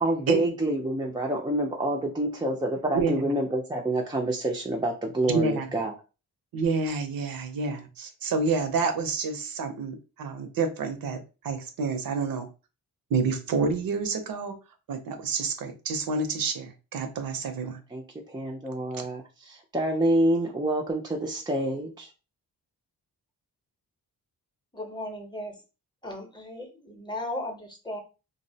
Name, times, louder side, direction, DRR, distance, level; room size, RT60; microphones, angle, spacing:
voice 1, 0.0-5.9 17.9-22.1, right 1 dB, 15° right, 0 dB, 0.3 m, -27 dB
voice 2, 5.3-5.7 6.5-12.5 13.1-14.6 14.9-17.8, right 4 dB, 65° right, 6 dB, 0.6 m, -28 dB
voice 3, 24.7-25.5 26.0-28.0, left 1 dB, 10° left, 3 dB, 0.7 m, -36 dB
2.5 x 2.0 x 2.7 m, 0.31 s
cardioid pair, 90°, 38 cm